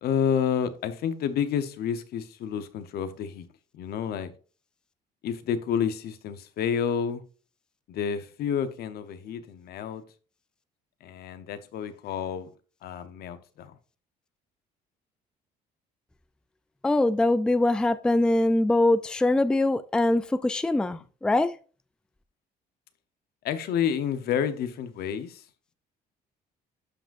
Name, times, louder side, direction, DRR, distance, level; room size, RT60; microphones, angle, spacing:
voice 1, 0.0-3.5 3.7-4.3 5.2-7.2 7.9-10.0 11.0-12.5 12.8-13.7 23.4-25.4, left 8 dB, 70° left, 0.9 m, -29 dB
voice 2, 16.8-21.5, left 2 dB, 5° left, 0.4 m, -23 dB
12.0 x 5.0 x 2.6 m
cardioid pair, 110°, 17 cm